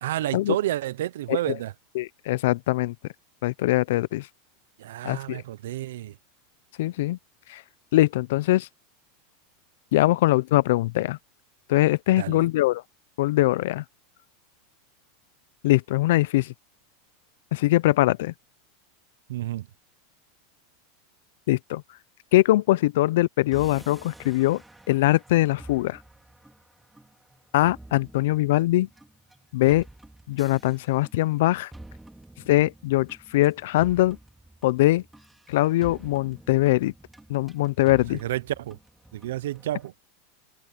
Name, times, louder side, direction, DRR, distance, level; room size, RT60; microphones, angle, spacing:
voice 1, 0.0-1.7 4.8-6.2 12.2-12.5 19.3-19.7 37.8-38.8 39.1-39.9, right 14 dB, 85° right, 0.6 m, -30 dB
voice 2, 2.0-2.9 3.4-4.3 5.0-5.4 6.8-7.2 7.5-7.6 7.9-8.7 9.9-11.2 11.7-12.8 13.2-13.8 15.6-16.5 17.5-18.3 21.5-21.8 22.3-24.6 24.9-26.0 27.5-28.9 29.5-29.8 30.3-31.7 32.5-34.2 34.6-35.0 35.5-36.9 37.3-38.2, left 17 dB, 75° left, 0.5 m, -22 dB
sound 1, 23.5-39.9, right 1 dB, 5° right, 4.4 m, -49 dB
supercardioid pair, 135°, 0 cm